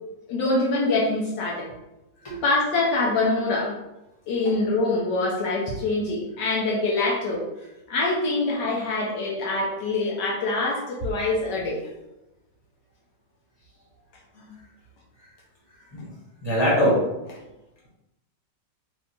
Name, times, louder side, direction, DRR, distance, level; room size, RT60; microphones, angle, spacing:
voice 1, 0.3-1.7 2.4-3.7 4.3-7.4 7.9-11.8, left 2 dB, 75° left, -3 dB, 1.3 m, -24 dB
voice 2, 16.4-17.1, equal, 15° left, -7 dB, 1.3 m, -22 dB
3.4 x 2.8 x 4.2 m, 0.96 s
omnidirectional pair, 2.0 m